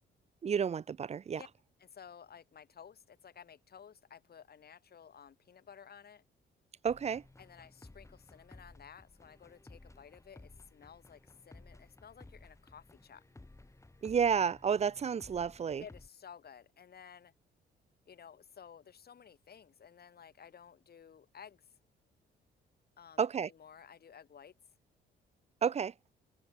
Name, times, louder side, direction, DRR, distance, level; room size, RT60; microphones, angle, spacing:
voice 1, 0.4-1.4 6.8-7.2 14.0-15.8 23.2-23.5 25.6-25.9, right 7 dB, 35° right, 0.5 m, -31 dB
voice 2, 1.8-6.2 7.4-13.2 15.8-17.3 18.1-21.7 23.0-24.6, left 7 dB, 50° left, 6.9 m, -54 dB
sound 1, 6.9-16.1, left 2 dB, 15° left, 6.1 m, -57 dB
cardioid pair, 90°, 20 cm